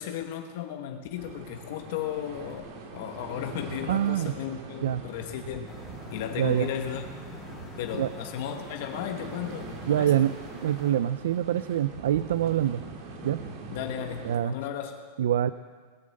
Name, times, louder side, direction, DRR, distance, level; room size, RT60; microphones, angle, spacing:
voice 1, 0.0-5.8 6.1-7.0 7.8-10.1 13.7-15.0, left 9 dB, 55° left, 5 dB, 1.1 m, -35 dB
sound 1, 1.2-14.4, right 3 dB, 45° right, 2.3 m, -43 dB
voice 2, 3.9-4.3 4.8-5.0 6.4-6.7 8.0-8.1 9.9-12.8 13.2-13.4 14.2-14.5 15.2-15.5, right 11 dB, 85° right, 13 dB, 0.4 m, -25 dB
sound 2, 5.7-10.9, left 2 dB, 5° left, 3.1 m, -45 dB
20.0 x 7.6 x 7.8 m, 1.5 s
supercardioid pair, 165°, 0 cm